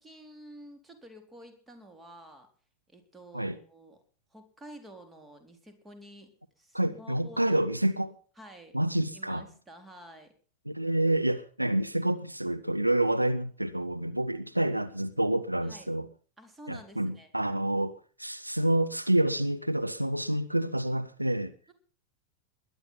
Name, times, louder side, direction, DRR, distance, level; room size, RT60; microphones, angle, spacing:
voice 1, 0.0-2.5 2.9-4.0 4.3-6.3 6.6-7.7 8.4-8.8 9.1-10.3 15.6-15.9 16.4-17.3 21.7-21.8, right 1 dB, 10° right, 4.1 m, -50 dB
voice 2, 6.7-8.1 8.7-9.5 10.7-16.1 16.7-21.5, right 1 dB, 85° right, 0.9 m, -28 dB
21.0 x 11.0 x 5.8 m
figure-of-eight pair, 90°, 0 cm